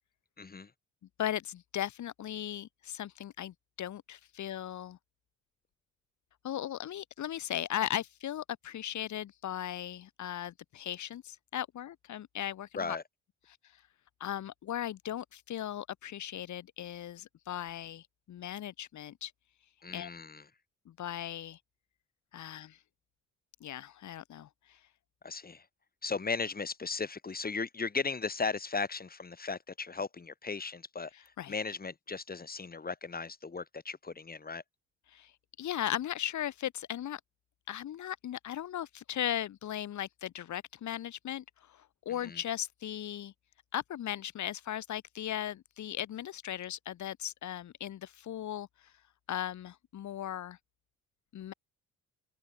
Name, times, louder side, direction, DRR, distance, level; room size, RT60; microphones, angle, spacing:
voice 1, 0.4-0.7 12.7-13.0 19.8-20.4 25.2-25.6 26.0-34.6 42.2-42.4, left 4 dB, 30° left, 7.3 m, -36 dB
voice 2, 1.2-5.0 6.4-13.0 13.5-13.6 14.2-19.3 19.9-20.1 20.9-21.6 22.3-22.8 23.6-24.8 31.1-31.5 35.1-35.3 35.6-37.2 37.7-43.3 43.7-48.7 49.3-50.6 51.3-51.5, left 11 dB, 70° left, 4.0 m, -37 dB
open air
cardioid pair, 90°, 30 cm